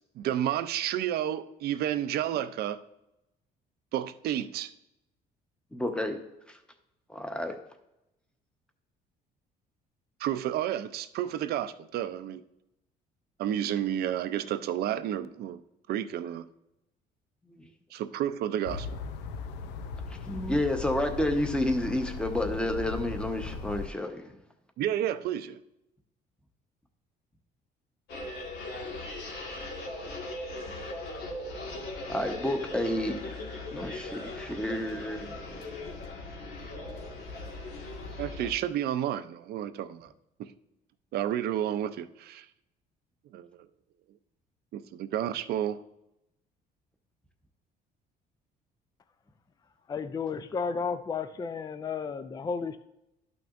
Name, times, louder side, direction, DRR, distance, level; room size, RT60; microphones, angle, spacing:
voice 1, 0.2-2.8 3.9-4.7 10.2-12.4 13.4-15.6 15.9-16.5 17.9-18.9 24.8-25.6 38.2-40.1 40.4-40.5 41.1-42.5 43.3-43.5 44.7-45.8, right 11 dB, 70° right, 0.5 m, -31 dB
voice 2, 5.7-6.2 7.1-7.6 17.5-17.6 20.3-24.3 32.1-35.3, left 1 dB, 5° left, 1.0 m, -30 dB
sound 1, 18.6-23.9, left 4 dB, 90° left, 0.6 m, -38 dB
sound 2, 28.1-38.5, left 2 dB, 70° left, 1.7 m, -39 dB
voice 3, 49.9-52.8, left 5 dB, 25° left, 0.4 m, -33 dB
12.0 x 5.8 x 2.5 m
cardioid pair, 110°, 17 cm